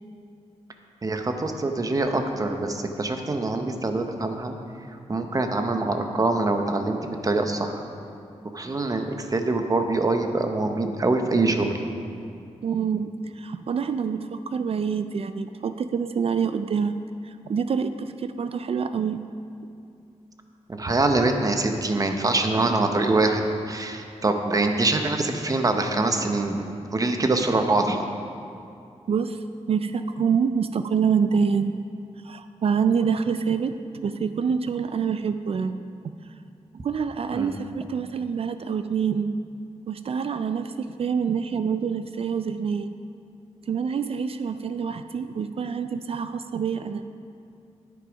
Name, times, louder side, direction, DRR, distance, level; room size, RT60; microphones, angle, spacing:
voice 1, 1.0-4.6 5.1-7.8 8.5-11.8 20.7-28.1 37.3-37.6, right 2 dB, 30° right, 5 dB, 0.8 m, -24 dB
voice 2, 12.6-16.9 17.2-19.2 29.1-31.8 32.2-33.8 34.0-35.8 36.8-39.4 39.9-42.9 43.7-47.0, right 6 dB, 55° right, 10 dB, 0.4 m, -26 dB
10.0 x 8.4 x 5.1 m, 2.5 s
wide cardioid pair, 125°, 12 cm